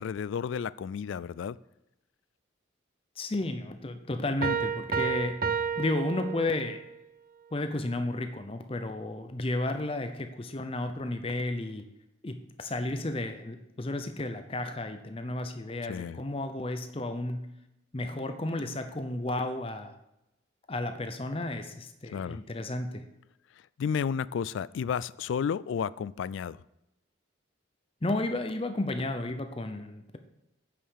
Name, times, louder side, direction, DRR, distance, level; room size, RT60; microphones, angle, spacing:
voice 1, 0.0-1.6 15.8-16.2 22.1-22.4 23.8-26.6, left 7 dB, 75° left, 19 dB, 0.3 m, -32 dB
voice 2, 3.2-5.4 5.8-6.8 7.5-11.8 12.2-17.5 17.9-19.9 20.7-23.1 28.0-30.2, left 2 dB, 30° left, 7 dB, 0.6 m, -33 dB
Piano, 4.4-6.9, right 6 dB, 45° right, 0.5 m, -31 dB
8.7 x 5.5 x 6.5 m, 0.88 s
head